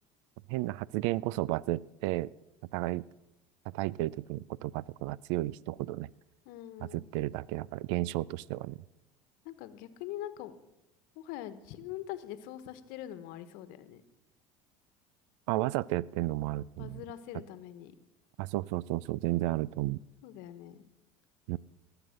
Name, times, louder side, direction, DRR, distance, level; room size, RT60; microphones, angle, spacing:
voice 1, 0.5-2.3 2.7-3.1 3.7-6.1 6.9-8.8 15.5-17.0 18.4-20.0 21.5-21.6, right 17 dB, 75° right, 24 dB, 0.4 m, -32 dB
voice 2, 6.4-7.0 9.4-10.6 11.1-14.0 16.8-17.9 20.2-20.8, left 12 dB, 70° left, 13 dB, 1.2 m, -43 dB
18.5 x 8.0 x 6.6 m, 0.92 s
supercardioid pair, 85°, 16 cm